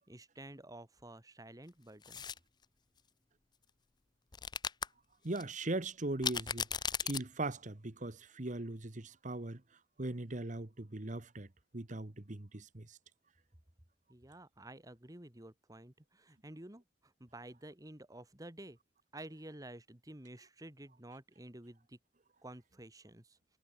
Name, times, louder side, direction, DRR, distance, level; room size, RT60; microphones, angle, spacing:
voice 1, 0.0-2.2 14.1-18.8 19.1-22.0 22.4-23.4, right 1 dB, 20° right, 2.0 m, -51 dB
sound 1, 2.0-2.4 4.3-4.9 5.4-5.5 6.2-7.2, left 7 dB, 25° left, 0.6 m, -36 dB
voice 2, 5.2-6.7 7.0-9.6 10.0-11.5 11.7-13.0, right 2 dB, 40° right, 1.3 m, -39 dB
head